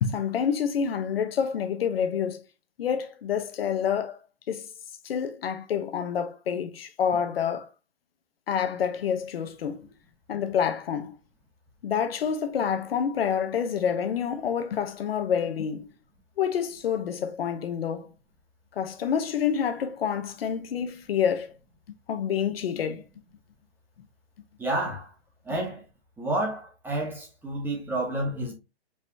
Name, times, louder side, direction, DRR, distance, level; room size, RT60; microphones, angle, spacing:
voice 1, 0.0-2.4 2.8-4.2 4.5-4.7 5.0-7.7 8.5-9.9 10.3-11.2 11.8-15.9 16.4-18.1 18.7-21.5 21.9-23.0, left 7 dB, 60° left, 0.9 m, -28 dB
voice 2, 24.6-25.1 25.4-25.8 26.2-28.5, right 1 dB, 5° right, 0.9 m, -30 dB
4.9 x 3.3 x 2.7 m
hypercardioid pair, 145°, 33 cm